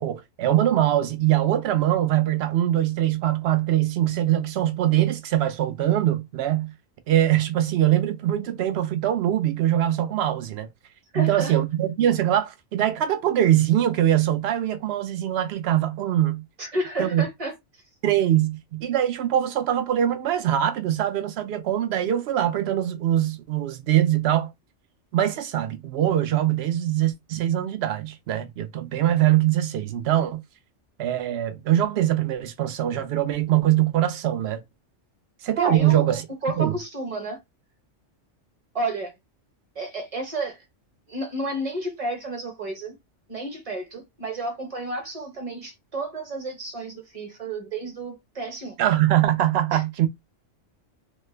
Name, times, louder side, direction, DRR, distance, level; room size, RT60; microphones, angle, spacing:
voice 1, 0.0-6.7 7.1-10.7 11.1-16.4 17.0-17.2 18.0-24.5 25.1-30.4 31.0-34.6 35.4-36.2 36.6-36.8 48.8-50.1, right 12 dB, 65° right, 0.7 m, -22 dB
voice 2, 11.1-11.6 16.6-17.5 35.6-37.4 38.7-39.1 39.7-40.6 41.1-43.0 43.3-48.8 49.7-49.8, right 2 dB, 30° right, 1.1 m, -31 dB
3.1 x 2.1 x 3.2 m
omnidirectional pair, 1.3 m